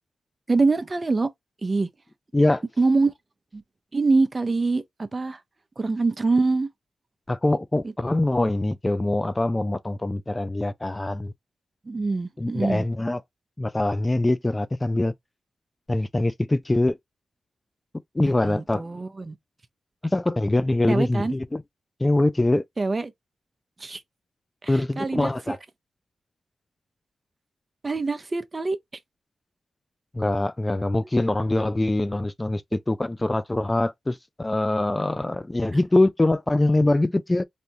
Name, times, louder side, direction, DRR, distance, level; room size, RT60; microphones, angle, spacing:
voice 1, 0.5-1.3 1.6-1.9 2.8-3.1 3.5-3.6 3.9-5.4 5.8-6.7 11.9-12.8 18.2-19.4 20.9-21.3 22.8-23.1 23.8-24.0 24.6-25.6 27.8-28.8, right 3 dB, 30° right, 0.6 m, -24 dB
voice 2, 7.3-11.3 12.4-13.2 13.6-15.1 15.9-17.0 18.1-18.8 20.0-21.6 22.0-22.6 24.7-25.6 30.1-37.4, left 2 dB, 20° left, 0.3 m, -23 dB
3.4 x 2.7 x 2.7 m
cardioid pair, 75°, 0 cm